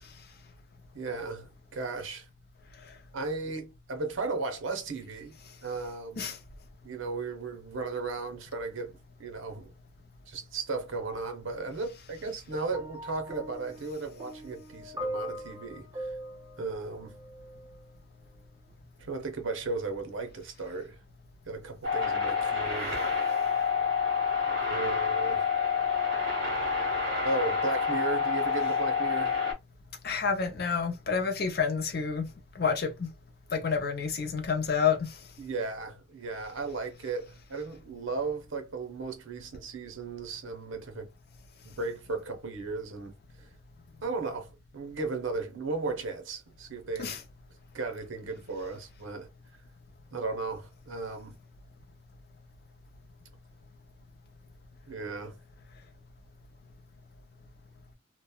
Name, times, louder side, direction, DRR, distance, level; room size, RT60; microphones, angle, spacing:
voice 1, 0.9-2.3 3.1-5.3 5.6-6.4 6.8-9.7 10.3-16.1 16.6-17.2 19.0-21.0 21.5-23.0 24.7-25.5 27.2-29.4 35.4-41.1 41.6-43.1 44.0-47.2 47.7-49.3 50.1-51.4 54.9-55.3, right 3 dB, 75° right, 0.7 m, -35 dB
sound 1, 12.7-17.8 18.7-18.9, equal, 20° right, 0.4 m, -41 dB
sound 2, 21.8-29.5, left 5 dB, 60° right, 1.4 m, -28 dB
voice 2, 30.0-32.3 32.5-33.1 33.5-35.2 47.0-47.2, left 6 dB, 50° left, 0.5 m, -29 dB
2.9 x 2.1 x 2.2 m
head